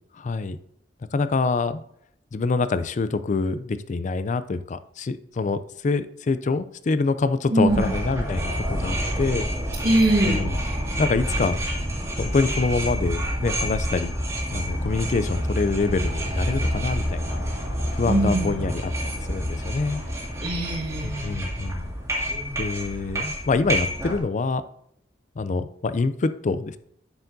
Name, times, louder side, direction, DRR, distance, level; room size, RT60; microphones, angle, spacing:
voice 1, 0.2-0.6 1.1-1.8 2.3-9.5 10.2-10.6 11.0-11.6 12.2-14.1 14.5-17.4 17.9-20.0 21.0-21.9 22.6-24.6 25.4-26.8, left 3 dB, 45° left, 13 dB, 0.4 m, -26 dB
voice 2, 7.5-7.9 9.8-10.4 18.1-18.6 20.4-21.4 22.3-22.6, right 1 dB, 60° right, -8 dB, 2.1 m, -22 dB
sound 1, 7.7-24.2, equal, 20° right, 2.0 m, -28 dB
9.6 x 6.8 x 2.7 m, 0.69 s
head